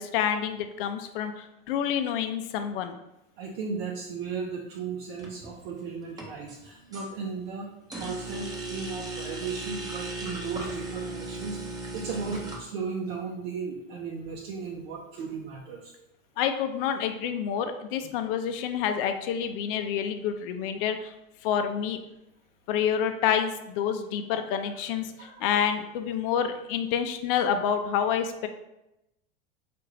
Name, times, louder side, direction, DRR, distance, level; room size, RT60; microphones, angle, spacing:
voice 1, 0.0-3.0 16.4-21.1 21.4-22.0 22.7-25.1 25.4-28.5, left 8 dB, 65° left, 7 dB, 0.5 m, -28 dB
voice 2, 3.4-7.7 8.0-11.6 11.9-15.9 23.8-23.9 24.3-24.4 25.2-25.6, right 5 dB, 75° right, -2 dB, 0.7 m, -36 dB
sound 1, 5.2-5.6 6.1-7.1 7.9-12.6, right 2 dB, 15° right, 0.6 m, -37 dB
3.6 x 2.5 x 3.2 m, 0.89 s
supercardioid pair, 125°, 29 cm